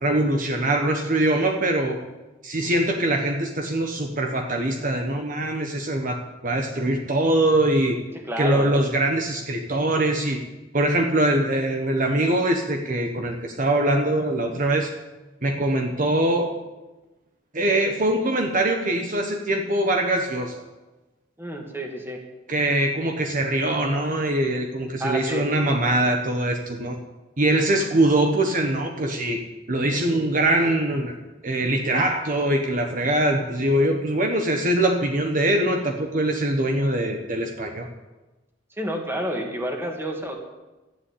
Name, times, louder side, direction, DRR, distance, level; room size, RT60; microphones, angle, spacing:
voice 1, 0.0-2.0 2.4-8.0 8.4-10.4 10.7-14.9 15.4-16.5 17.5-20.6 22.5-27.0 27.4-29.4 29.7-31.1 31.4-37.9, right 1 dB, 45° right, 3 dB, 1.2 m, -23 dB
voice 2, 8.3-8.7 21.4-22.2 25.0-25.5 38.8-40.4, equal, 15° right, 2 dB, 2.3 m, -29 dB
13.0 x 11.0 x 8.5 m, 1.1 s
head